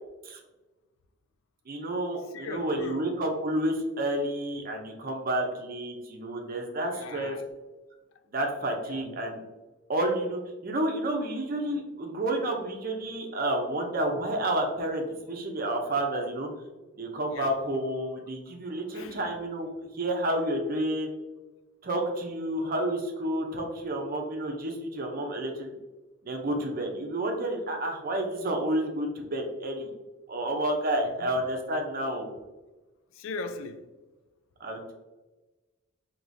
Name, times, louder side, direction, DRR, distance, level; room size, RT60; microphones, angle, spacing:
voice 1, 1.7-7.4 8.3-9.4 9.9-16.5 17.0-19.7 19.9-21.1 21.8-25.7 26.2-29.9 30.3-32.3 34.6-34.9, right 1 dB, 45° right, 0.6 m, -30 dB
voice 2, 2.3-3.1 6.9-7.4 8.9-9.2 17.3-17.5 18.9-19.3 31.0-31.4 33.1-33.9, left 3 dB, 85° left, 0.4 m, -39 dB
4.7 x 2.9 x 2.6 m
head